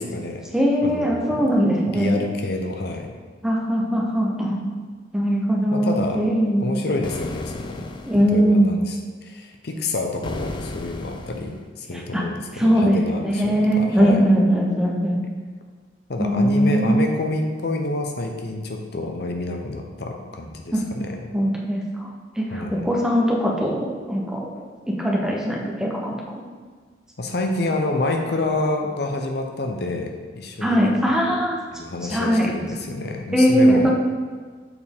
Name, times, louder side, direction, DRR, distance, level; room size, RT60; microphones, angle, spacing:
voice 1, 0.0-0.4 0.8-1.5 1.9-3.1 5.7-6.2 6.6-7.9 8.3-14.2 16.1-21.3 22.5-22.9 27.2-31.0 31.3-31.4 31.7-33.9, left 2 dB, 60° left, 3 dB, 0.7 m, -28 dB
voice 2, 0.5-2.2 3.4-4.6 5.1-6.7 8.1-8.8 11.9-12.2 12.5-15.2 16.2-17.1 20.7-20.8 21.3-22.1 22.4-24.5 24.9-26.2 30.6-31.6 32.1-32.5 33.3-33.9, equal, 5° right, -2 dB, 0.7 m, -20 dB
sound 1, 7.0-8.4 10.2-11.7, left 2 dB, 25° left, 0.3 m, -35 dB
6.9 x 4.3 x 3.6 m, 1.5 s
head